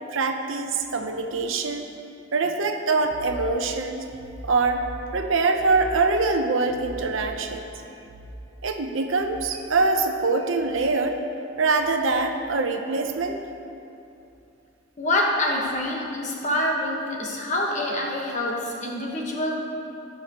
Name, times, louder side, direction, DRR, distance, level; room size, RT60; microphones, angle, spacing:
voice 1, 0.1-1.8 2.3-4.0 4.4-4.8 5.1-7.7 8.6-11.2 11.6-13.4, right 3 dB, 80° right, 5 dB, 0.7 m, -24 dB
voice 2, 15.0-19.6, left 1 dB, 35° left, -2 dB, 1.3 m, -26 dB
17.0 x 5.9 x 3.0 m, 2.7 s
head